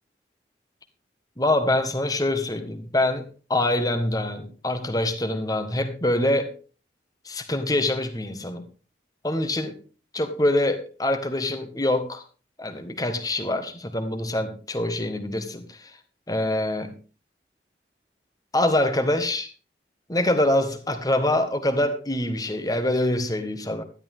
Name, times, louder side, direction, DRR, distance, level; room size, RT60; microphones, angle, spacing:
voice 1, 1.4-6.5 7.2-8.7 9.2-9.8 10.1-12.2 12.6-16.0 16.3-16.9 18.5-19.5 20.1-23.8, left 1 dB, 20° left, 1.5 m, -25 dB
13.0 x 12.0 x 3.6 m
head